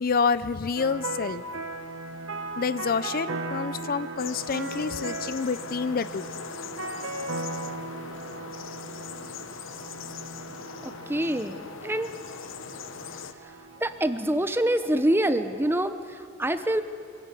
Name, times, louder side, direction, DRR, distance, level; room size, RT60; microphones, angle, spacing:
voice 1, 0.0-1.4 2.6-6.3, left 5 dB, 45° left, 15 dB, 0.5 m, -28 dB
sound 1, 0.8-15.7, right 2 dB, 75° right, 1.6 m, -38 dB
sound 2, 4.2-13.3, left 6 dB, 65° left, 0.9 m, -40 dB
voice 2, 10.8-12.1 13.8-16.8, right 1 dB, 10° right, 10 dB, 0.9 m, -26 dB
24.5 x 16.5 x 8.3 m, 2.4 s
head